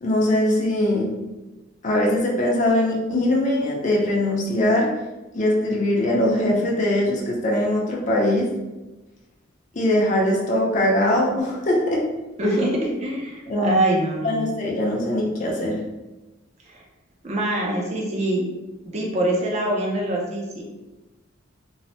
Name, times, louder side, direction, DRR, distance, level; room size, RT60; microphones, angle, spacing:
voice 1, 0.0-1.1 1.8-4.9 5.3-8.5 9.7-12.0 12.4-12.6 13.5-13.7 14.2-15.8, left 1 dB, 40° left, -2 dB, 0.5 m, -21 dB
voice 2, 12.4-12.7 13.0-14.4 16.7-16.8 17.2-18.4 18.8-20.6, right 1 dB, 35° right, -1 dB, 0.5 m, -24 dB
3.1 x 2.0 x 2.7 m, 1.1 s
head